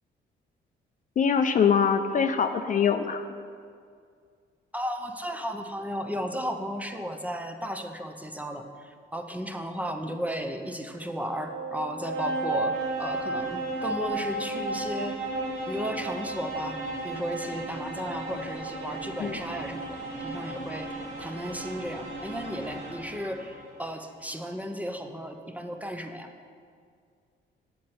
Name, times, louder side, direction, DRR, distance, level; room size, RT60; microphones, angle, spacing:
voice 1, 1.2-3.2 19.2-19.4, left 7 dB, 40° left, 7 dB, 0.4 m, -23 dB
voice 2, 4.7-15.2 15.7-26.3, equal, 5° right, 5 dB, 0.6 m, -34 dB
sound 1, 11.0-23.8, right 2 dB, 85° right, 1.5 m, -34 dB
8.3 x 6.4 x 4.3 m, 2.2 s
cardioid pair, 90°, 20 cm